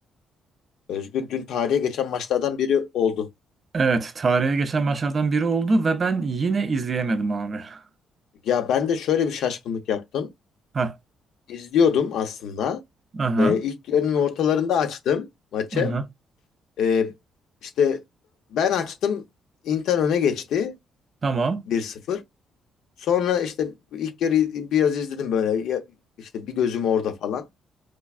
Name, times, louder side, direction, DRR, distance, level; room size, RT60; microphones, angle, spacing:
voice 1, 0.9-3.3 8.4-10.3 11.5-12.8 13.4-15.3 15.5-15.9 16.8-17.1 17.6-18.0 18.5-19.2 19.6-20.7 21.7-22.2 23.0-25.8 26.2-27.4, left 8 dB, 80° left, 0.8 m, -24 dB
voice 2, 3.7-7.8 10.7-10.9 13.1-13.6 15.7-16.0 21.2-21.7, right 4 dB, 35° right, 0.5 m, -23 dB
4.6 x 2.2 x 2.4 m
cardioid pair, 125°, 0 cm